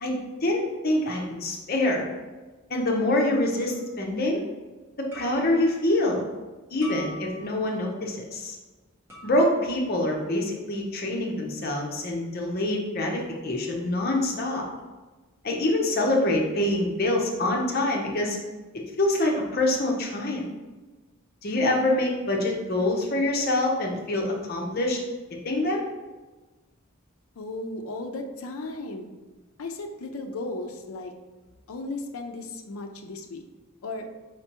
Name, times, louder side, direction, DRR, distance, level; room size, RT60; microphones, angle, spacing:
voice 1, 0.0-2.1 2.7-4.4 5.1-6.3 6.7-8.6 9.2-14.6 15.4-18.4 19.0-20.4 21.4-25.0 25.4-25.8, left 1 dB, 45° left, 0 dB, 0.8 m, -25 dB
sound 1, 3.7-4.0 5.1-5.6 6.8-7.7 9.1-9.7, left 2 dB, 10° right, 1.3 m, -44 dB
voice 2, 27.4-29.1 29.6-31.1 31.7-33.4 33.8-34.1, left 2 dB, 85° left, 4 dB, 0.5 m, -35 dB
5.0 x 3.3 x 2.9 m, 1.2 s
head